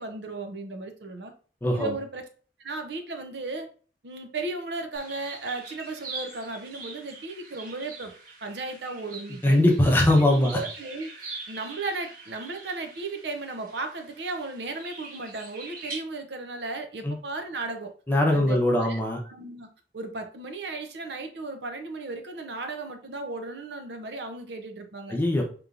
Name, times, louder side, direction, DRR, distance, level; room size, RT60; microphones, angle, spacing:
voice 1, 0.0-1.3 1.7-2.3 2.6-3.7 4.0-8.1 8.4-9.6 10.1-17.9 18.3-19.7 19.9-25.2, right 3 dB, 75° right, 6 dB, 0.6 m, -35 dB
voice 2, 1.6-1.9 9.4-10.6 17.0-17.2 18.1-19.2 25.1-25.4, left 1 dB, 10° left, 0 dB, 0.7 m, -21 dB
sound 1, 4.9-15.9, right 3 dB, 50° right, 1.2 m, -43 dB
5.2 x 3.0 x 2.5 m, 0.41 s
head